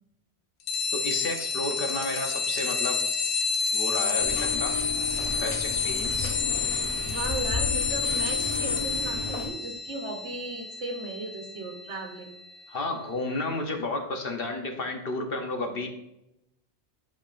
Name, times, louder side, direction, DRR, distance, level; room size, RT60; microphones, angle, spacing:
sound 1, 0.7-12.8, left 5 dB, 90° left, 1.2 m, -29 dB
voice 1, 0.9-3.0 3.7-4.8 5.3-6.3 12.7-15.9, left 2 dB, 55° left, 4 dB, 1.1 m, -32 dB
sound 2, 4.2-9.5, left 3 dB, 35° left, 0.9 m, -34 dB
voice 2, 7.0-12.3 13.7-13.8, right 2 dB, 75° right, 2 dB, 1.5 m, -36 dB
11.0 x 5.2 x 2.6 m, 0.86 s
omnidirectional pair, 1.2 m